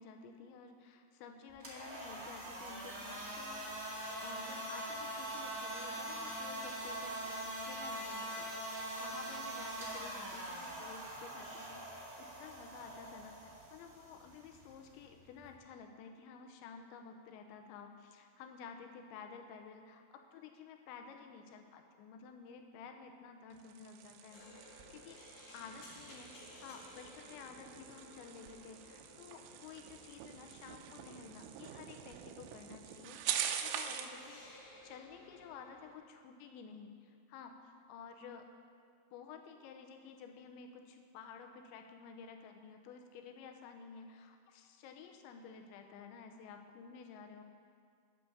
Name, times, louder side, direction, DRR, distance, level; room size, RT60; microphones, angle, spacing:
voice 1, 0.0-25.2 25.5-26.3 26.6-37.6 37.9-38.5 39.1-47.4, left 6 dB, 85° left, 5 dB, 3.0 m, -52 dB
sound 1, 1.5-15.5, right 1 dB, 65° right, 0.8 m, -43 dB
sound 2, 23.5-34.2, right 9 dB, 90° right, 3.1 m, -44 dB
sound 3, 24.3-36.0, left 1 dB, 60° left, 1.6 m, -58 dB
10.5 x 8.3 x 6.8 m, 2.2 s
omnidirectional pair, 5.4 m